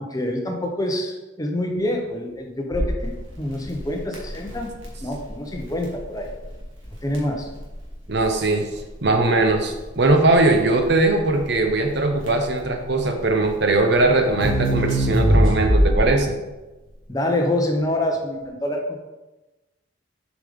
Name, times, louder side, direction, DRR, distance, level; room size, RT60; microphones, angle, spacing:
voice 1, 0.0-4.7 5.0-6.3 7.0-7.5 17.1-19.0, left 1 dB, 20° left, 2 dB, 0.7 m, -26 dB
Crackle, 2.7-16.3, equal, 85° right, 2.0 m, -24 dB
voice 2, 8.1-8.7 9.0-16.3, right 2 dB, 60° right, 4 dB, 0.8 m, -20 dB
7.2 x 5.0 x 3.6 m, 1.1 s
head